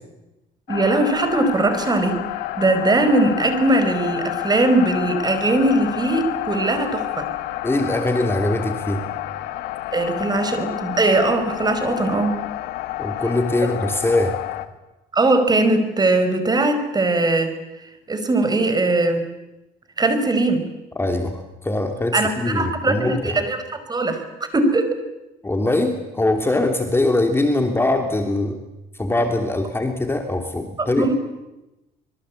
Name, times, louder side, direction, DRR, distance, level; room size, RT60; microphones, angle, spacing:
sound 1, 0.7-14.7, left 15 dB, 90° left, 1.9 m, -29 dB
voice 1, 0.7-2.2 2.6-7.3 9.9-12.4 15.1-17.5 18.1-19.2 20.0-20.6 22.1-23.6 23.9-24.2 24.5-25.0 30.8-31.1, right 2 dB, 25° right, 9 dB, 5.2 m, -20 dB
voice 2, 7.6-9.0 13.0-14.4 21.0-23.4 25.4-28.6 29.0-31.1, left 2 dB, 15° left, 5 dB, 3.2 m, -22 dB
26.0 x 23.0 x 8.5 m, 0.99 s
cardioid pair, 110°, 17 cm